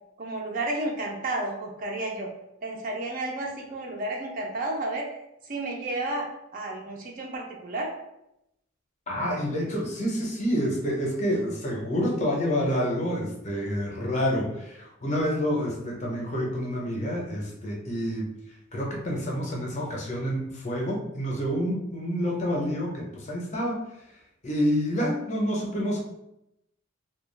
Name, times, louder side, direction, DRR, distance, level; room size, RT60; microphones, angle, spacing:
voice 1, 0.2-2.3 2.6-5.1 5.5-6.3 6.5-7.9, right 2 dB, 40° right, 0 dB, 0.4 m, -31 dB
voice 2, 9.1-18.3 18.7-23.8 24.4-26.0, equal, 35° left, -2 dB, 0.5 m, -28 dB
2.2 x 2.1 x 3.1 m, 0.84 s
head